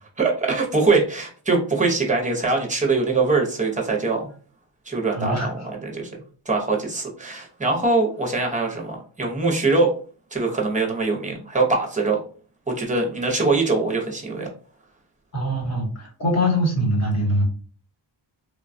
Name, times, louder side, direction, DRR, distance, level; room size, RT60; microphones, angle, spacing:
voice 1, 0.2-4.3 4.9-6.2 6.5-9.9 10.3-12.2 12.7-14.5, right 3 dB, 15° right, 0 dB, 0.7 m, -22 dB
voice 2, 5.1-5.5 15.3-17.4, equal, 35° left, -2 dB, 1.1 m, -22 dB
3.2 x 2.2 x 2.5 m, 0.41 s
wide cardioid pair, 150°, 47 cm